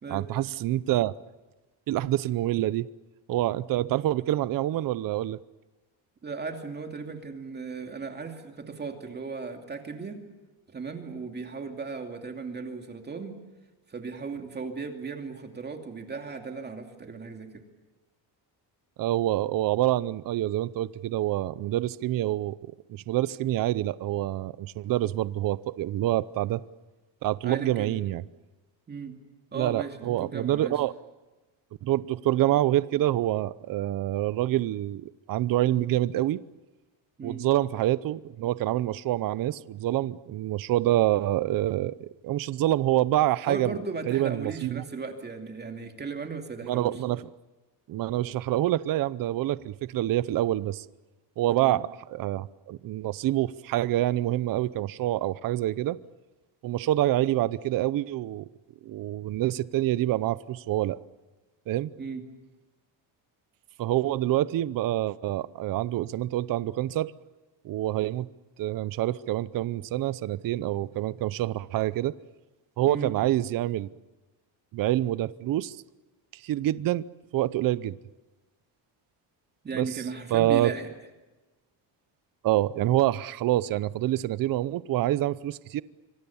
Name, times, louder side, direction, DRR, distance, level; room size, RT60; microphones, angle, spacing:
voice 1, 0.1-1.1 1.9-2.9 3.3-5.4 19.0-22.6 22.9-26.6 27.2-28.2 29.5-30.9 31.8-36.4 37.2-43.8 44.1-44.8 46.6-47.2 47.9-50.8 51.4-56.0 56.6-58.5 58.8-61.0 61.7-61.9 63.8-67.1 67.6-68.3 68.6-72.1 72.8-73.9 74.7-75.8 76.4-77.1 77.3-77.9 79.7-79.9 80.3-80.7 82.4-85.8, right 14 dB, 50° right, 0.7 m, -26 dB
voice 2, 6.2-10.2 10.7-13.4 13.9-17.6 27.4-28.0 28.9-29.1 29.5-30.8 37.2-37.4 43.4-47.0 51.5-51.8 62.0-62.2 72.9-73.1 79.6-80.9, right 4 dB, 20° right, 2.5 m, -36 dB
26.0 x 25.5 x 7.1 m
cardioid pair, 175°, 44 cm